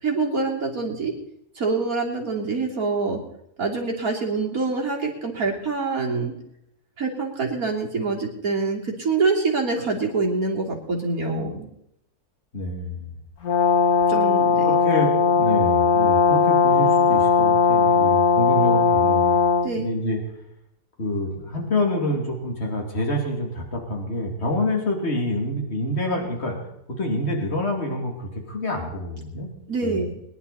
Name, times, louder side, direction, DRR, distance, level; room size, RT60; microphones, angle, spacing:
voice 1, 0.0-1.1 1.6-3.2 3.6-6.3 7.0-11.7 14.1-14.7 19.6-19.9 29.7-30.1, right 3 dB, 65° right, -1 dB, 3.3 m, -25 dB
voice 2, 12.5-13.1 14.6-19.4 19.7-20.2 21.0-26.6 27.0-29.5 29.8-30.1, left 1 dB, 45° left, 1 dB, 3.2 m, -27 dB
Brass instrument, 13.4-19.7, left 5 dB, 70° left, 2.1 m, -18 dB
22.5 x 11.0 x 4.3 m, 0.77 s
omnidirectional pair, 1.6 m